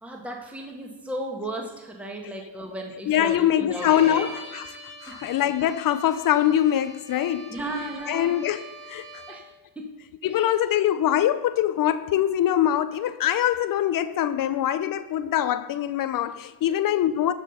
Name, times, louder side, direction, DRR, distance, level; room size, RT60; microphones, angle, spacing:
voice 1, 0.0-4.2 5.1-5.2 7.5-8.3 9.3-9.4 9.7-9.9 16.7-16.8, right 1 dB, 5° right, 1.4 m, -35 dB
voice 2, 3.1-7.6 8.1-9.2 10.2-17.3, left 11 dB, 45° left, 0.5 m, -23 dB
Bowed string instrument, 3.7-9.6, right 2 dB, 30° right, 3.6 m, -42 dB
13.0 x 6.2 x 5.6 m
supercardioid pair, 95°, 50 cm